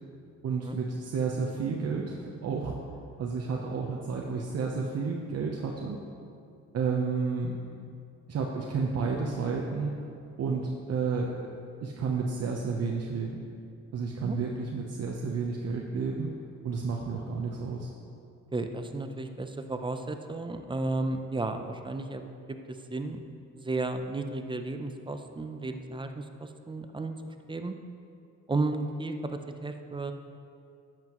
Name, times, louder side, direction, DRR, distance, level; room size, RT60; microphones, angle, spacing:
voice 1, 0.4-2.8 3.2-6.0 6.7-7.6 8.3-9.9 10.4-11.4 11.8-13.4 13.9-16.3 16.6-17.9, right 5 dB, 55° right, -1 dB, 0.8 m, -31 dB
voice 2, 18.5-22.2 22.5-23.3 23.5-27.2 27.5-27.7 28.5-30.1, right 2 dB, 15° right, 6 dB, 0.5 m, -33 dB
10.5 x 7.6 x 3.0 m, 2.5 s
cardioid pair, 90°, 30 cm